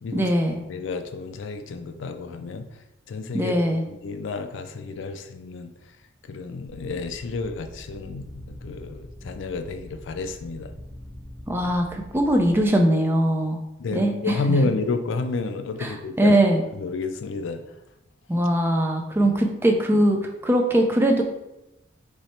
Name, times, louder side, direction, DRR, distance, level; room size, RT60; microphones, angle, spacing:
voice 1, 0.1-0.6 3.3-3.8 11.5-13.6 13.9-14.6 15.8-16.6 18.3-21.2, right 1 dB, 10° right, 2 dB, 0.4 m, -21 dB
voice 2, 0.7-2.7 3.1-3.6 3.9-5.7 6.3-10.7 13.8-16.4 16.7-17.6, left 3 dB, 70° left, 8 dB, 0.4 m, -30 dB
sound 1, 6.7-12.7, left 1 dB, 45° right, 1.4 m, -43 dB
3.2 x 3.1 x 4.2 m, 0.92 s
head